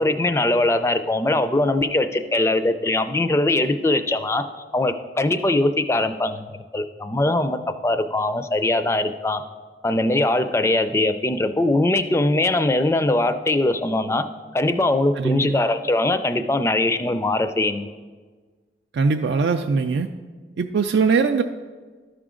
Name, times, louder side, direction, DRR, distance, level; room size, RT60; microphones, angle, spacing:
voice 1, 0.0-4.4 4.7-9.4 9.8-14.2 14.5-17.9, left 2 dB, 15° left, 10 dB, 0.3 m, -21 dB
voice 2, 15.2-15.6 18.9-20.1 20.6-21.4, right 5 dB, 75° right, 5 dB, 0.4 m, -21 dB
12.5 x 5.0 x 3.7 m, 1.4 s
head